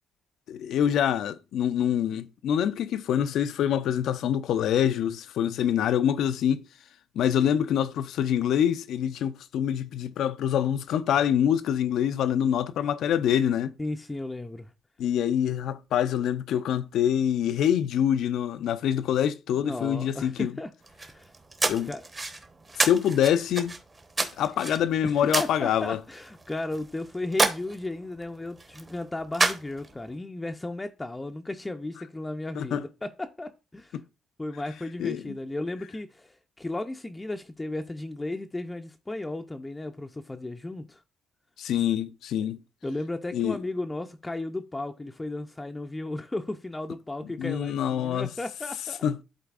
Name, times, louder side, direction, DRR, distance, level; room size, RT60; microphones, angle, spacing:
voice 1, 0.5-6.6 7.2-13.7 15.0-20.5 21.7-21.9 22.8-23.7 24.4-26.0 32.6-32.8 33.9-34.0 35.0-35.3 41.6-42.6 43.3-43.6 47.4-48.3 49.0-49.2, left 9 dB, 80° left, 0.4 m, -25 dB
voice 2, 13.8-14.7 19.5-20.7 21.1-21.3 21.9-22.1 25.0-34.0 34.4-41.0 42.4-42.5 42.8-49.0, left 2 dB, 15° left, 0.4 m, -35 dB
sound 1, 20.8-30.1, right 3 dB, 30° right, 0.9 m, -31 dB
11.5 x 4.0 x 2.4 m
cardioid pair, 90°, 0 cm